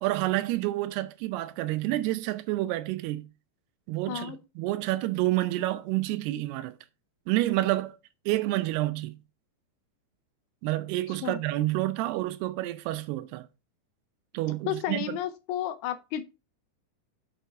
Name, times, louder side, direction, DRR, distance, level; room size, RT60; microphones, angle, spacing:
voice 1, 0.0-3.3 3.9-6.8 7.3-8.0 8.3-9.2 10.6-13.5 14.3-15.2, right 17 dB, 80° right, 2.7 m, -29 dB
voice 2, 4.1-4.4 11.1-11.4 14.7-16.2, left 10 dB, 80° left, 2.6 m, -32 dB
6.7 x 6.6 x 4.5 m
omnidirectional pair, 4.7 m